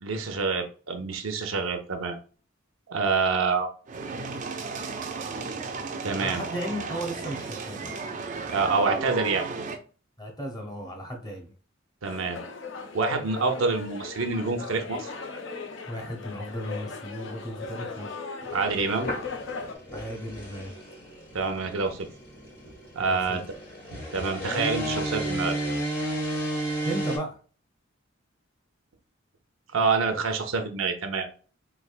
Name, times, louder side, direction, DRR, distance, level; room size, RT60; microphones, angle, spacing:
voice 1, 0.0-2.2 2.9-3.7 6.0-6.4 8.5-9.5 12.0-12.4 12.9-15.1 18.5-19.1 21.3-22.1 22.9-23.4 23.9-25.6 29.7-31.3, right 4 dB, 85° right, 6 dB, 0.6 m, -27 dB
sound 1, 3.9-9.8, right 4 dB, 40° right, 0.4 m, -34 dB
voice 2, 6.2-8.0 10.2-11.5 15.9-18.1 19.9-20.7 23.0-23.4 26.8-27.4, equal, 20° left, 2 dB, 0.8 m, -35 dB
sound 2, 12.0-19.8, left 4 dB, 65° left, 0.6 m, -38 dB
sound 3, 18.4-27.2, right 1 dB, 50° left, 1.5 m, -33 dB
3.6 x 3.3 x 2.4 m, 0.38 s
head